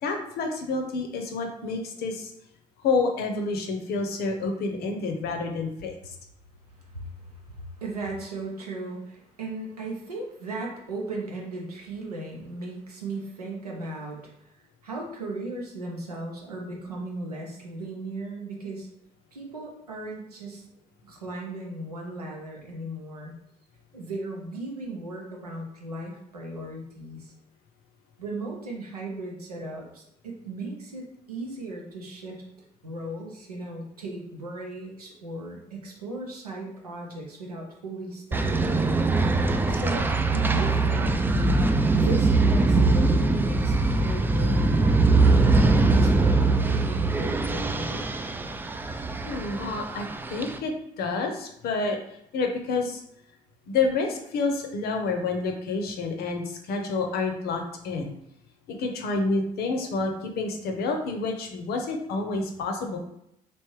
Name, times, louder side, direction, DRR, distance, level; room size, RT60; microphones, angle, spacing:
voice 1, 0.0-2.3 2.8-6.0 49.2-52.0 52.3-53.0 53.7-58.1 58.7-63.0, left 3 dB, 55° left, 3 dB, 0.7 m, -29 dB
voice 2, 7.6-14.3 14.8-18.9 19.3-20.6 21.0-23.3 23.9-27.3 28.2-32.4 32.8-39.0 39.7-41.2 41.9-48.2, right 2 dB, 85° right, -1 dB, 0.6 m, -37 dB
sound 1, 38.3-50.6, right 3 dB, 10° right, 0.3 m, -22 dB
3.4 x 2.9 x 3.0 m, 0.78 s
figure-of-eight pair, 45°, 19 cm